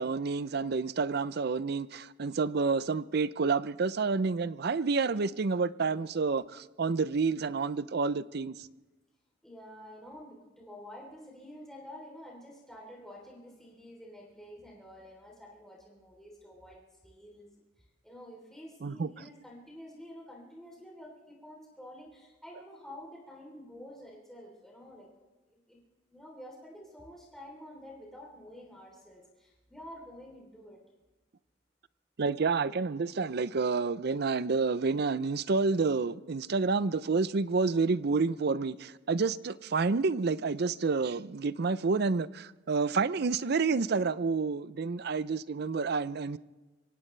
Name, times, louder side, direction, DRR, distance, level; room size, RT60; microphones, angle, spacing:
voice 1, 0.0-8.6 18.8-19.1 32.2-46.4, right 4 dB, 60° right, 0.5 m, -29 dB
voice 2, 9.4-25.1 25.5-25.8 26.1-30.8, equal, ahead, 3.5 m, -49 dB
24.5 x 17.5 x 3.3 m
head